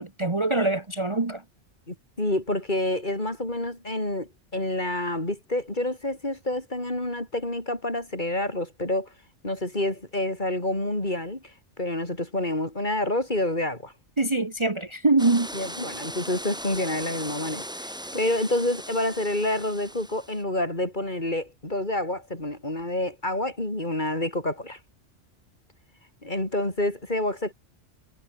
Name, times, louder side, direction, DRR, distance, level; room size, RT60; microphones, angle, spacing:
voice 1, 0.0-1.4 14.2-15.5, right 2 dB, 25° right, 1.4 m, -24 dB
voice 2, 1.9-9.1 9.4-13.9 15.5-24.8 26.2-27.5, left 1 dB, 40° left, 5.1 m, -28 dB
sound 1, 15.2-20.4, equal, 5° right, 1.7 m, -38 dB
omnidirectional pair, 1.2 m